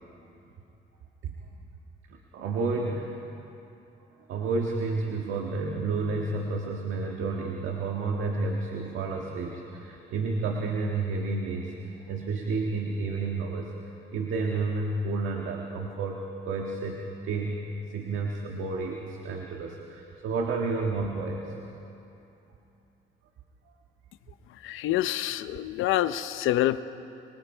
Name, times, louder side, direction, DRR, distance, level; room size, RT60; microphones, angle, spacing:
voice 1, 2.3-3.2 4.3-13.7 14.1-17.6 17.9-21.5, right 3 dB, 80° right, 0 dB, 1.7 m, -31 dB
voice 2, 24.6-26.8, left 13 dB, 85° left, 13 dB, 0.7 m, -26 dB
25.0 x 24.0 x 4.5 m, 2.9 s
cardioid pair, 90°, 20 cm